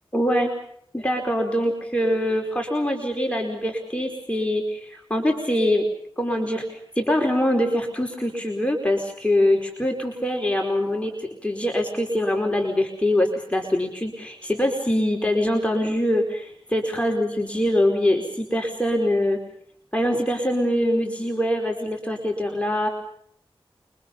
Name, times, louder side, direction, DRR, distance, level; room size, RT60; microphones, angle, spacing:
voice 1, 0.1-0.5 0.9-5.9 6.2-19.4 19.9-22.9, left 1 dB, 10° left, 2 dB, 4.9 m, -23 dB
29.0 x 24.5 x 5.5 m, 0.68 s
wide cardioid pair, 50°, 10 cm